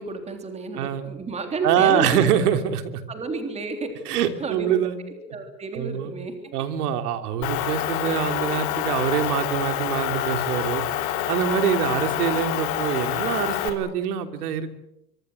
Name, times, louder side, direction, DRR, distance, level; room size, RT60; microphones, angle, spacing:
voice 1, 0.0-2.3 3.1-6.5 7.4-7.5, right 3 dB, 15° right, 6 dB, 3.5 m, -32 dB
voice 2, 1.6-3.0 4.0-5.0 5.7-6.1 6.5-10.8 11.3-14.7, right 9 dB, 65° right, 8 dB, 3.3 m, -24 dB
Motor vehicle (road) / Engine, 7.4-13.7, left 12 dB, 40° left, 3.3 m, -27 dB
25.0 x 24.0 x 8.1 m, 0.82 s
supercardioid pair, 165°, 49 cm